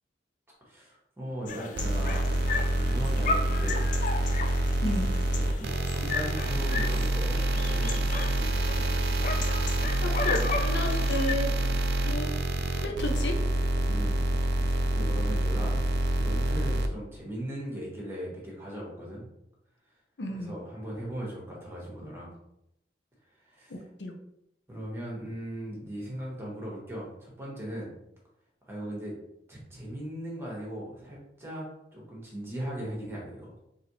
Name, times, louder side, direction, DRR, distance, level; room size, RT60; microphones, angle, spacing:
voice 1, 0.6-3.8 5.3-8.2 13.8-14.2 14.6-15.8 16.2-19.3 20.3-22.3 23.4-23.7 24.7-27.9 28.7-29.1 29.5-33.5, equal, 15° right, -4 dB, 1.1 m, -38 dB
sound 1, 1.5-11.3, left 4 dB, 45° left, 0.3 m, -35 dB
sound 2, 1.8-16.9, right 1 dB, 70° right, 0.4 m, -27 dB
voice 2, 4.8-5.1 10.0-11.5 12.0-12.3 12.7-13.4 20.2-20.5 23.7-24.1, left 1 dB, 80° left, 3 dB, 0.7 m, -32 dB
4.1 x 2.7 x 3.0 m, 0.80 s
head